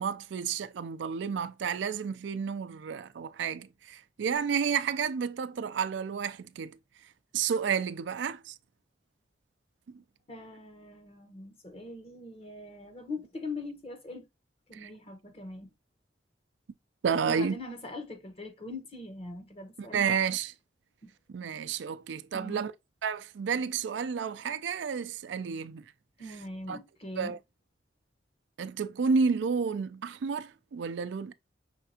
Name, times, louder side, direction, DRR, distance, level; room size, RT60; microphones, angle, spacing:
voice 1, 0.0-6.8 7.3-8.5 14.7-14.9 17.0-17.6 19.8-20.5 21.3-22.7 23.0-25.8 26.3-26.4 26.7-26.8 27.2-27.4 28.6-31.3, right 6 dB, 80° right, 0.4 m, -31 dB
voice 2, 10.3-14.3 14.7-15.7 17.2-20.2 21.0-21.1 22.3-22.7 26.2-27.3, left 2 dB, 35° left, 1.0 m, -42 dB
5.8 x 3.4 x 2.7 m
head